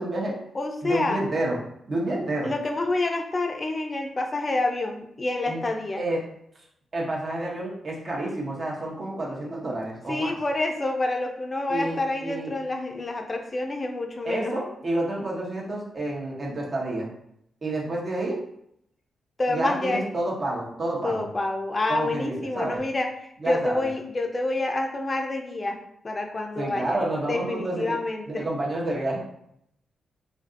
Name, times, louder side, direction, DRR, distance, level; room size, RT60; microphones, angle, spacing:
voice 1, 0.0-0.4 0.8-1.6 1.9-2.5 5.5-5.6 6.0-6.2 6.9-10.4 11.7-12.6 14.2-17.1 17.6-18.4 19.5-21.3 21.9-22.8 23.4-23.9 26.6-28.0 28.3-29.2, right 1 dB, 50° right, -2 dB, 0.8 m, -29 dB
voice 2, 0.5-1.2 2.4-6.0 10.1-14.6 19.4-20.1 21.0-23.1 23.5-25.8 26.0-27.0 27.3-28.4, left 2 dB, 40° left, 3 dB, 0.4 m, -28 dB
2.5 x 2.3 x 2.5 m, 0.75 s
supercardioid pair, 45°, 0 cm